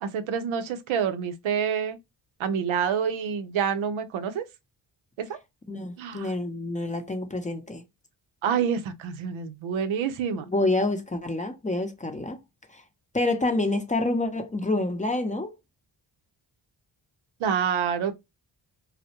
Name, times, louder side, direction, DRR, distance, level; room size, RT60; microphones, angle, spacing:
voice 1, 0.0-2.0 2.4-4.4 5.2-5.4 6.0-6.3 8.4-10.5 17.4-18.1, right 7 dB, 90° right, 0.6 m, -27 dB
voice 2, 5.7-7.8 10.5-12.4 12.7-12.8 13.1-15.5, left 2 dB, 15° left, 0.6 m, -27 dB
2.3 x 2.0 x 2.8 m
cardioid pair, 55°, 46 cm